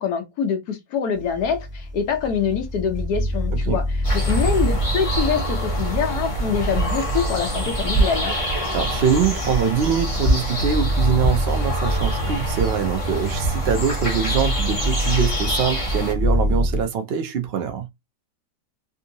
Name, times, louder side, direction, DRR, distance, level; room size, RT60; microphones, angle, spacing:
voice 1, 0.0-8.4, left 6 dB, 70° left, 1.3 m, -25 dB
sound 1, 1.1-16.8, equal, 10° right, 1.3 m, -27 dB
sound 2, 4.0-16.1, right 1 dB, 25° left, 0.9 m, -25 dB
voice 2, 8.7-17.9, right 7 dB, 75° right, 0.5 m, -23 dB
3.5 x 2.7 x 2.7 m
omnidirectional pair, 1.8 m